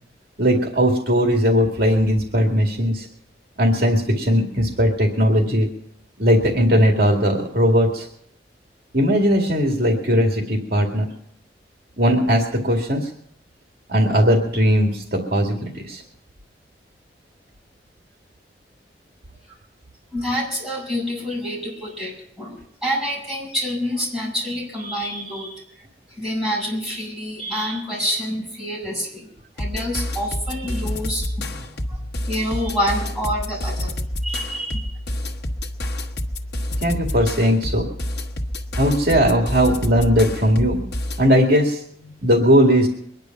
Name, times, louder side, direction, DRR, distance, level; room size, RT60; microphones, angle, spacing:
voice 1, 0.4-3.1 3.6-5.7 6.2-8.1 8.9-11.1 12.0-13.1 13.9-16.0 36.8-37.9 38.8-40.8 41.2-42.9, equal, 55° right, 1 dB, 2.2 m, -18 dB
voice 2, 20.1-25.6 26.2-29.3 29.6-32.0 32.3-33.9 34.2-34.9, equal, ahead, -6 dB, 7.5 m, -27 dB
sound 1, 29.6-41.3, left 1 dB, 75° left, 1.2 m, -28 dB
23.0 x 10.5 x 5.9 m, 0.70 s
head